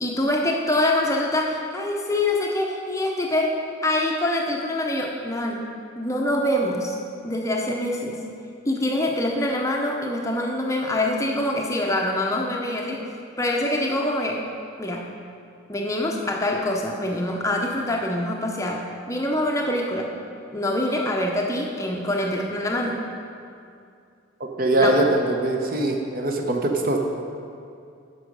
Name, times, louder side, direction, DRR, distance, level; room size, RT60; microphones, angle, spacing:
voice 1, 0.0-5.7 6.0-7.0 7.2-8.3 8.6-14.4 14.8-15.1 15.7-20.1 20.5-23.0 24.8-25.0, left 1 dB, 15° left, 0 dB, 0.6 m, -25 dB
voice 2, 24.6-27.0, right 1 dB, 45° right, 2 dB, 0.8 m, -22 dB
9.4 x 6.1 x 5.3 m, 2.4 s
head